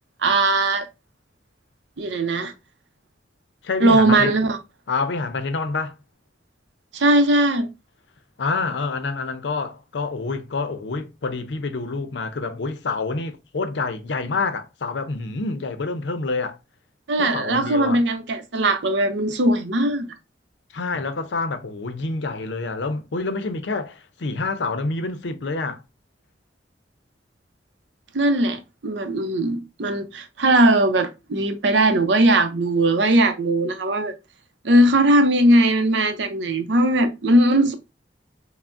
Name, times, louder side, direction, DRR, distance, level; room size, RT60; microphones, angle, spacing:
voice 1, 0.2-0.9 2.0-2.5 3.8-4.6 6.9-7.7 17.1-20.1 28.1-34.1 34.6-37.7, right 1 dB, 85° right, 0.6 m, -19 dB
voice 2, 3.6-4.3 4.9-6.0 8.4-16.6 17.2-18.0 20.7-25.8, left 3 dB, 80° left, 0.6 m, -27 dB
5.7 x 2.1 x 2.5 m
head